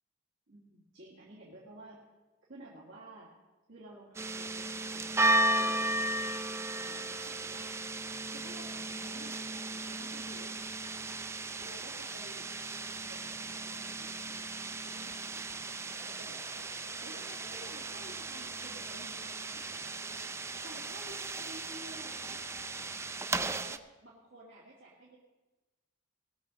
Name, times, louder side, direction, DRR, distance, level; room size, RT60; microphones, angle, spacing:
voice 1, 0.5-2.0 2.5-3.3 3.7-6.0 6.6-7.8 8.3-11.2 11.6-12.5 13.0-14.4 14.6-16.7 17.0-20.0 20.6-22.9 23.5-25.2, right 1 dB, 65° right, -6 dB, 2.2 m, -52 dB
sound 1, 4.1-23.8, right 2 dB, 15° right, 0.3 m, -35 dB
sound 2, 15.8-22.8, right 2 dB, 40° right, 2.7 m, -56 dB
19.0 x 7.0 x 5.2 m, 1.2 s
head